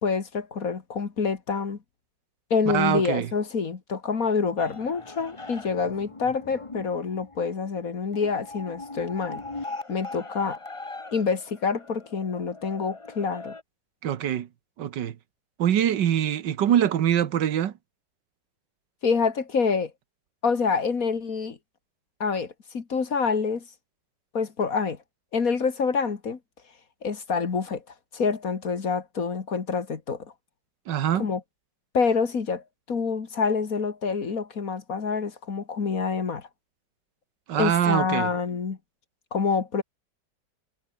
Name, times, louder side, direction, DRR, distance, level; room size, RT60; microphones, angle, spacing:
voice 1, 0.0-1.8 2.5-9.4 9.9-10.6 11.1-13.6 19.0-19.9 20.4-21.6 22.2-23.6 24.3-25.0 25.3-26.4 27.0-27.8 28.1-30.3 31.1-31.4 31.9-36.5 37.6-38.8 39.3-39.8, left 5 dB, 50° left, 2.3 m, -27 dB
voice 2, 2.7-3.3 14.0-14.5 14.8-15.2 15.6-17.7 30.9-31.2 37.5-38.3, right 10 dB, 80° right, 1.8 m, -24 dB
sound 1, 4.6-13.6, left 3 dB, 20° left, 1.5 m, -40 dB
omnidirectional pair, 1.9 m